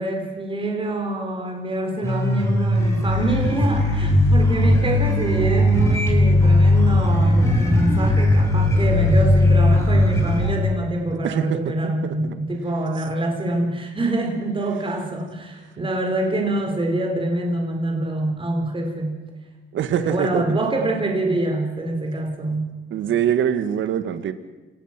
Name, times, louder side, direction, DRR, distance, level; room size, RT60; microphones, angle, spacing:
voice 1, 0.0-19.2 19.9-22.7, right 1 dB, 25° right, 2 dB, 4.2 m, -25 dB
sound 1, 2.0-10.6, left 1 dB, 15° left, 5.5 m, -18 dB
voice 2, 11.2-11.7 12.0-12.4 19.7-20.4 22.9-24.3, right 9 dB, 75° right, 11 dB, 1.7 m, -23 dB
28.5 x 17.0 x 6.0 m, 1.2 s
cardioid pair, 90°, 20 cm